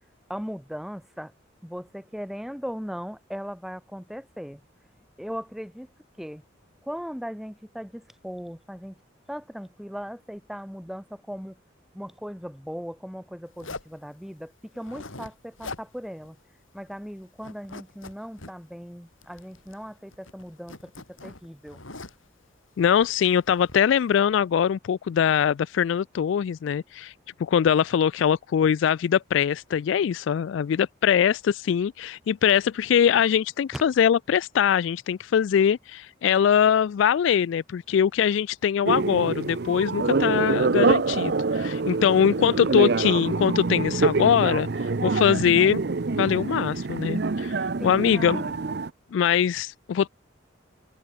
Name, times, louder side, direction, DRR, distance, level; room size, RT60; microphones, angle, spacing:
voice 1, 0.3-1.3 1.6-4.6 5.2-5.9 6.2-6.4 6.8-8.9 9.3-11.6 11.9-16.4 16.7-21.8 33.7-33.8 47.8-48.7, equal, ahead, 4.6 m, -38 dB
Zipper (clothing), 13.6-14.0 14.7-15.3 15.6-15.9 16.2-16.3 16.7-17.1 17.4-18.5 19.2-19.9 20.1-22.3 22.9-23.9, left 3 dB, 90° left, 5.1 m, -42 dB
voice 2, 22.8-27.1 27.4-45.8 46.1-47.6 47.8-48.4 49.1-50.1, left 8 dB, 70° left, 0.3 m, -22 dB
sound 1, 38.8-48.9, right 3 dB, 55° right, 0.6 m, -25 dB
head